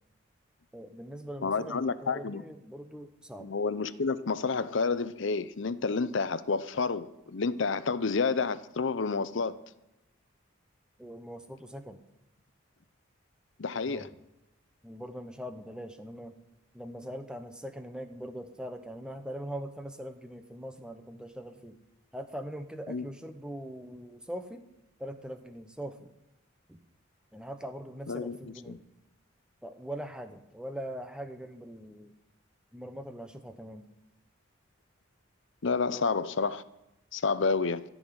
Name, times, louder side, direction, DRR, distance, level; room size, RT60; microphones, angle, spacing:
voice 1, 0.7-3.5 11.0-12.0 13.9-14.1 14.8-16.4 16.7-21.8 22.1-24.6 25.0-26.1 26.7-26.8 27.3-28.8 29.6-32.1 32.7-33.8 35.9-36.1, equal, 5° right, 0.9 m, -41 dB
voice 2, 1.4-2.4 3.4-9.6 13.6-14.1 22.9-23.0 28.1-28.8 35.6-36.6 37.1-37.8, left 4 dB, 65° left, 0.6 m, -30 dB
14.0 x 6.3 x 9.4 m
head